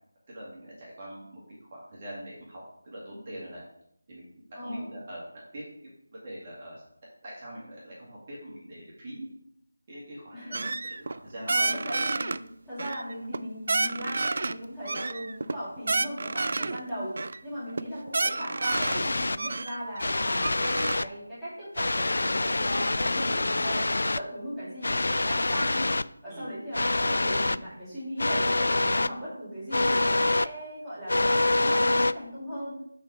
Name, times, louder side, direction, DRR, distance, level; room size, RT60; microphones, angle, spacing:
voice 1, 0.3-3.6 4.1-4.2 4.6-5.2 5.5-6.8 7.2-9.3 9.9-10.3 10.8-11.5 16.6-16.7 26.3-26.5, right 1 dB, 25° right, -6 dB, 2.2 m, -43 dB
voice 2, 4.5-4.9 10.3-11.0 11.4-12.4 12.7-17.2 17.4-20.5 20.9-25.9 26.2-32.8, equal, ahead, -16 dB, 2.3 m, -38 dB
sound 1, 10.5-11.2 11.5-12.4 12.8-13.4 13.7-14.5 14.9-16.8 17.2-17.4 17.7-17.8 18.1-19.0 19.4-21.0, right 3 dB, 50° right, 0.3 m, -29 dB
sound 2, 18.7-19.4 20.0-21.1 21.8-24.2 24.8-26.0 26.7-27.6 28.2-29.1 29.7-30.5 31.1-32.1, left 2 dB, 65° left, 0.3 m, -26 dB
5.8 x 4.9 x 5.7 m, 0.74 s
figure-of-eight pair, 175°, 0 cm